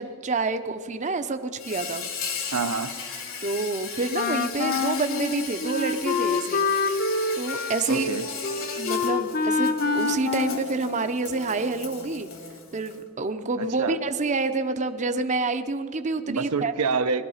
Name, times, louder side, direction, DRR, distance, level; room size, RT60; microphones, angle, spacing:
voice 1, 0.0-2.0 3.4-6.6 7.3-8.1 8.8-12.3 12.7-16.7, right 3 dB, 35° right, 9 dB, 0.6 m, -28 dB
Insect, 1.6-13.0, left 6 dB, 65° left, 2.3 m, -36 dB
voice 2, 2.5-2.9 7.9-8.2 13.6-14.0 16.3-17.2, right 4 dB, 85° right, 9 dB, 0.7 m, -27 dB
Wind instrument woodwind instrument, 4.1-11.3, left 4 dB, 45° left, 1.0 m, -27 dB
17.5 x 12.5 x 5.7 m, 2.3 s
head